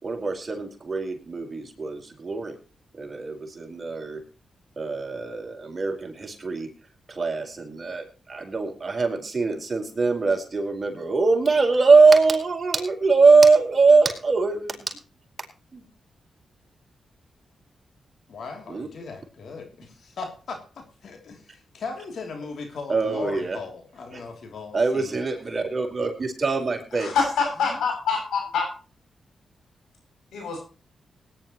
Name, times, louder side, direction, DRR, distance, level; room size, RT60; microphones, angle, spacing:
voice 1, 0.0-2.6 3.0-4.2 4.8-6.7 7.1-15.0 15.7-15.8 18.7-18.9 22.9-23.6 24.1-24.2 24.7-27.1 27.7-27.8, right 4 dB, 35° right, 2 dB, 4.6 m, -22 dB
voice 2, 18.3-25.2, left 4 dB, 70° left, 4 dB, 3.0 m, -38 dB
voice 3, 26.9-28.7 30.3-30.6, left 5 dB, 90° left, 2 dB, 7.3 m, -25 dB
19.5 x 10.5 x 3.1 m, 0.35 s
cardioid pair, 60°, 0 cm